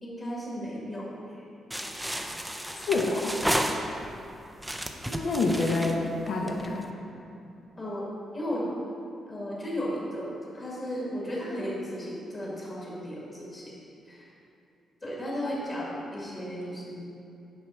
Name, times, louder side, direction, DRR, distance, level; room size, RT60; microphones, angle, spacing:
voice 1, 0.0-1.4 5.0-5.3 6.4-6.7 7.8-8.0 8.3-8.7 9.3-13.7 14.1-14.3 15.0-17.0, equal, 25° left, -6 dB, 2.0 m, -35 dB
sound 1, 1.7-4.2 4.6-6.8, equal, 5° right, 0.4 m, -32 dB
voice 2, 2.9-3.4 5.2-6.8, left 3 dB, 60° left, 0 dB, 0.8 m, -27 dB
9.3 x 6.0 x 4.4 m, 2.8 s
wide cardioid pair, 160°, 0 cm